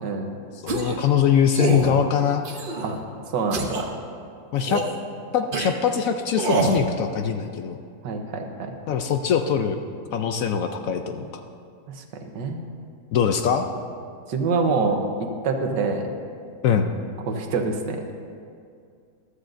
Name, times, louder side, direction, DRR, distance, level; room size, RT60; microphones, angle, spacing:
voice 1, 0.0-0.3 2.8-2.9 3.3-4.0 8.0-8.8 11.9-12.6 14.3-16.1 17.3-18.0, right 4 dB, 85° right, 4 dB, 1.6 m, -26 dB
voice 2, 0.6-2.5 4.5-4.8 5.3-7.8 8.9-9.8 10.1-11.3 13.1-13.7 16.6-16.9, left 7 dB, 70° left, 7 dB, 0.8 m, -22 dB
sound 1, 0.7-1.0 1.5-1.9 2.5-3.0 3.5-3.8 4.6-5.0 5.5-5.7 6.3-6.8, right 3 dB, 45° right, 0.8 m, -25 dB
14.5 x 13.0 x 2.6 m, 2.3 s
omnidirectional pair, 1.8 m